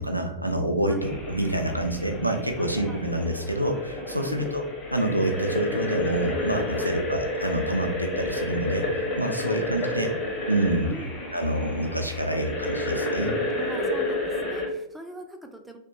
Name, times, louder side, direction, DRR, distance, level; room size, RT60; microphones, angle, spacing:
voice 1, 0.0-4.6 4.9-10.1 10.5-10.9 11.3-13.4, right 1 dB, 90° right, 4 dB, 0.3 m, -27 dB
sound 1, 1.0-14.7, left 1 dB, 30° left, 0.8 m, -30 dB
voice 2, 2.6-3.0 4.2-4.6 6.8-6.9 9.4-9.6 10.8-11.2 13.5-15.8, right 1 dB, 5° right, 3 dB, 0.3 m, -42 dB
2.8 x 2.1 x 2.6 m, 0.79 s
figure-of-eight pair, 90°, 0 cm